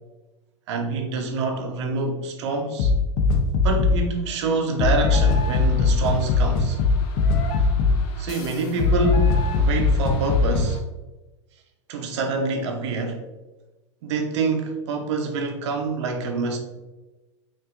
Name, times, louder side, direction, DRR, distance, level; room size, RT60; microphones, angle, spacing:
voice 1, 0.7-2.9 3.6-6.8 8.2-10.8 11.9-13.2 14.0-16.6, right 3 dB, 65° right, 0.8 m, -26 dB
sound 1, 2.8-4.1 4.8-10.8, left 4 dB, 50° left, 0.6 m, -20 dB
5.4 x 2.7 x 2.5 m
hypercardioid pair, 85°, 16 cm